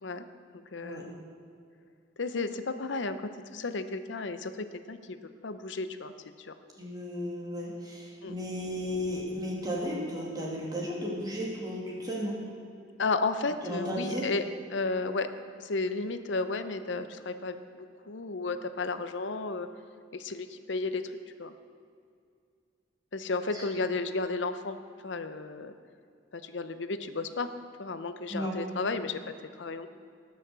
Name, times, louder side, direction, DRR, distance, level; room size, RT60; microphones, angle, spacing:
voice 1, 0.7-1.1 2.2-5.2 5.4-6.1 6.4-6.5 8.2-8.3 13.0-14.4 14.7-15.3 15.6-19.7 20.1-21.0 21.4-21.5 23.1-24.8 25.0-25.7 26.4-27.5 27.8-29.9, left 3 dB, 70° left, 10 dB, 0.7 m, -33 dB
voice 2, 6.8-12.4 13.6-14.3 23.5-23.6 28.3-28.5, equal, 20° right, -4 dB, 2.6 m, -34 dB
19.0 x 6.4 x 6.8 m, 2.3 s
head